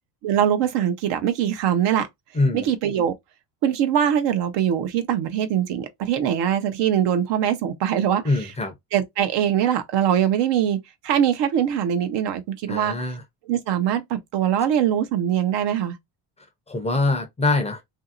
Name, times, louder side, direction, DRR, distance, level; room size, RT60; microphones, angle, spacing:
voice 1, 0.2-2.1 2.5-3.1 3.6-8.5 8.9-10.8 11.0-13.0 13.5-16.0, right 9 dB, 65° right, 0.8 m, -22 dB
voice 2, 2.3-2.7 8.2-8.7 12.7-13.2 16.7-17.8, left 2 dB, 15° left, 0.5 m, -23 dB
2.8 x 2.7 x 2.5 m
cardioid pair, 155°, 45 cm